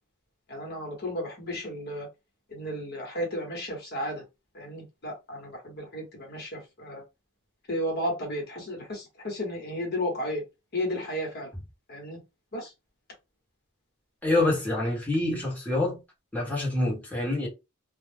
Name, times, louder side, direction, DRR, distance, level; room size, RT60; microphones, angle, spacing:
voice 1, 0.5-2.1 2.5-4.2 4.5-7.0 7.7-10.4 10.7-11.5 11.9-12.2 12.5-12.7, left 1 dB, 50° left, 1.1 m, -33 dB
voice 2, 14.2-16.0 16.3-17.5, left 2 dB, 10° left, 1.0 m, -26 dB
2.3 x 2.1 x 3.3 m
head